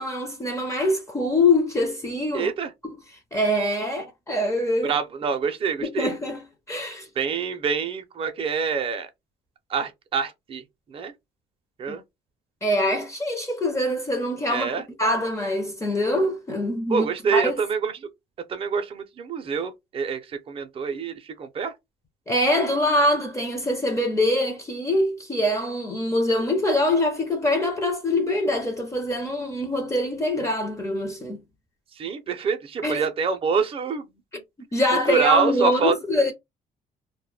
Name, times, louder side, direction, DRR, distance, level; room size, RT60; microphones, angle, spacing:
voice 1, 0.0-2.5 2.8-3.0 3.3-4.9 5.8-6.4 6.7-7.1 11.9-12.0 12.6-17.6 22.3-31.4 32.8-33.1 34.7-36.3, left 1 dB, 15° left, 0.6 m, -24 dB
voice 2, 2.3-2.7 4.8-6.1 7.2-9.1 9.7-10.6 10.9-11.1 11.8-12.0 14.5-14.8 16.9-18.0 18.5-21.7 31.9-34.1 34.3-34.4 35.1-35.9, right 6 dB, 35° right, 0.5 m, -26 dB
2.2 x 2.1 x 3.2 m
cardioid pair, 110°, 17 cm